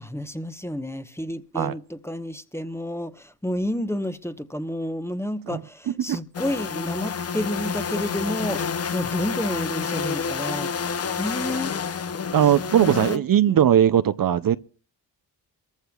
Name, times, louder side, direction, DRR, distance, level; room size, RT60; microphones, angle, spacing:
voice 1, 0.0-10.7 11.2-11.7 12.6-13.8, left 1 dB, 5° left, 0.9 m, -30 dB
sound 1, 6.3-13.2, left 6 dB, 35° left, 0.6 m, -29 dB
voice 2, 12.3-14.6, right 10 dB, 55° right, 0.5 m, -19 dB
23.0 x 14.5 x 2.3 m
cardioid pair, 60°, 43 cm